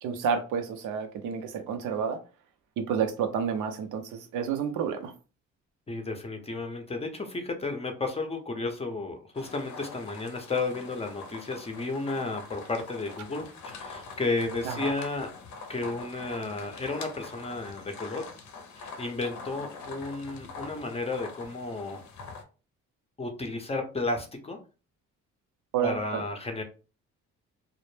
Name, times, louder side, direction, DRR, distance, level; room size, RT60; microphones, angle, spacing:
voice 1, 0.0-2.2 2.8-5.1 14.6-14.9 25.7-26.2, right 7 dB, 80° right, 0.5 m, -30 dB
voice 2, 5.9-15.3 15.7-18.2 18.8-22.0 23.2-24.6 25.8-26.6, left 3 dB, 20° left, 0.5 m, -33 dB
sound 1, 9.4-22.4, left 4 dB, 70° left, 0.6 m, -44 dB
2.0 x 2.0 x 3.1 m
cardioid pair, 90°, 30 cm